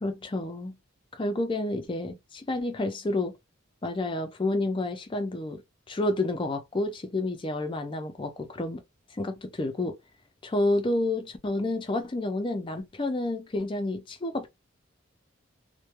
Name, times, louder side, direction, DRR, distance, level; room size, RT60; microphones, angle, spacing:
voice 1, 0.0-0.8 1.1-3.3 3.8-5.6 5.9-8.8 9.1-10.0 10.4-14.5, left 2 dB, 25° left, 0.4 m, -29 dB
2.2 x 2.2 x 2.9 m
head